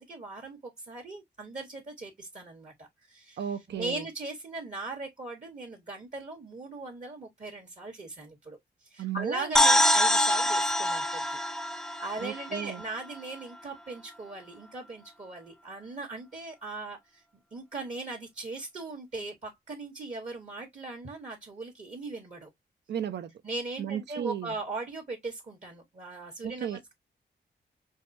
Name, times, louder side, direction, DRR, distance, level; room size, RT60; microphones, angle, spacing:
voice 1, 0.0-3.4 3.7-8.6 8.9-11.4 12.0-17.2 17.5-22.5 23.4-26.9, right 3 dB, 40° right, 1.1 m, -39 dB
voice 2, 3.4-4.0 9.0-9.5 12.2-12.8 22.9-23.3 23.8-24.5 26.4-26.8, right 9 dB, 75° right, 0.5 m, -34 dB
sound 1, 9.6-13.2, left 1 dB, 5° left, 0.5 m, -25 dB
4.6 x 2.3 x 2.6 m
cardioid pair, 85°, 18 cm